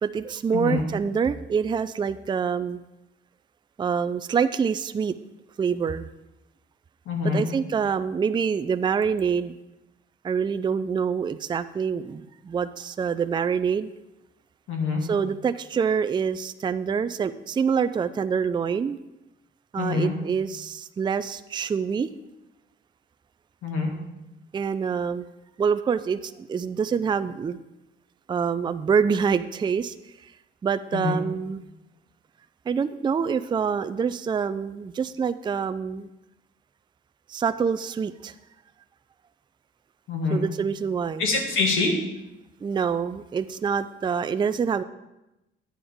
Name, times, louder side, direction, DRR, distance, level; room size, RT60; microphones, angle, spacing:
voice 1, 0.0-2.8 3.8-5.1 5.6-6.1 7.3-9.6 10.2-13.9 15.0-19.0 19.7-22.1 24.5-25.3 25.6-27.6 28.3-29.9 30.2-30.3 30.6-31.6 32.7-36.1 37.3-38.3 40.3-41.2 42.6-44.8, right 6 dB, 25° right, 12 dB, 0.3 m, -26 dB
voice 2, 0.5-0.8 7.1-7.4 14.7-15.1 19.8-20.2 23.6-23.9 30.9-31.2 40.1-40.4 41.2-41.9, left 4 dB, 85° left, 1 dB, 2.1 m, -25 dB
10.0 x 8.6 x 3.5 m, 0.95 s
cardioid pair, 90°, 20 cm